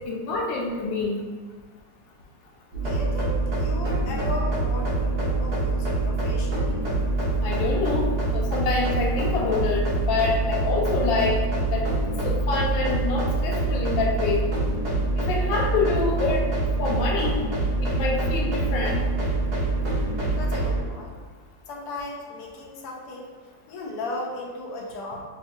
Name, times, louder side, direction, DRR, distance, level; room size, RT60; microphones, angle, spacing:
voice 1, 0.1-1.2 7.4-11.4 11.7-11.9 12.2-14.5 15.2-16.5 16.8-17.4 17.8-19.0, left 4 dB, 85° left, -1 dB, 1.3 m, -26 dB
voice 2, 2.7-6.8 20.3-21.2 21.7-23.3 23.7-25.2, left 2 dB, 65° left, -3 dB, 1.2 m, -36 dB
sound 1, 2.7-20.8, right 2 dB, 65° right, 1.6 m, -25 dB
5.6 x 2.3 x 2.6 m, 1.4 s
omnidirectional pair, 1.9 m